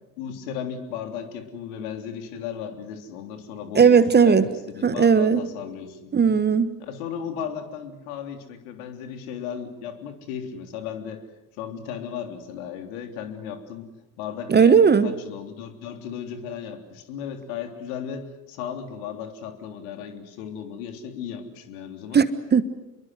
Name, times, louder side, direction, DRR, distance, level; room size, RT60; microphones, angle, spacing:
voice 1, 0.2-6.1 6.8-11.2 11.5-13.9 14.2-22.2, left 8 dB, 60° left, 6 dB, 3.5 m, -35 dB
voice 2, 3.7-4.5 4.8-5.4 6.1-6.7 14.5-15.1 22.1-22.6, right 6 dB, 20° right, 14 dB, 1.3 m, -17 dB
28.0 x 22.5 x 8.0 m, 0.99 s
figure-of-eight pair, 65°, 48 cm